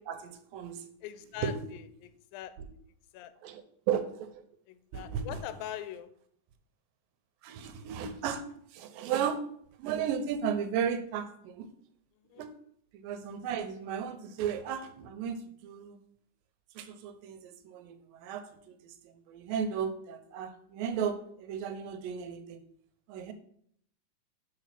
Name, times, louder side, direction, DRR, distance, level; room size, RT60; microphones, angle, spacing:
voice 1, 0.1-0.9 1.4-1.7 3.4-3.6 3.9-4.4 4.9-5.4 7.4-8.4 8.7-9.4 9.8-11.7 12.4-12.5 12.9-15.4 15.6-16.0 16.8-18.4 18.8-22.6 23.1-23.3, right 7 dB, 90° right, 9 dB, 2.3 m, -34 dB
voice 2, 1.0-2.5 3.1-3.3 4.7-6.1 12.3-12.4, left 11 dB, 85° left, 12 dB, 2.3 m, -42 dB
4.9 x 4.8 x 5.7 m, 0.66 s
omnidirectional pair, 4.0 m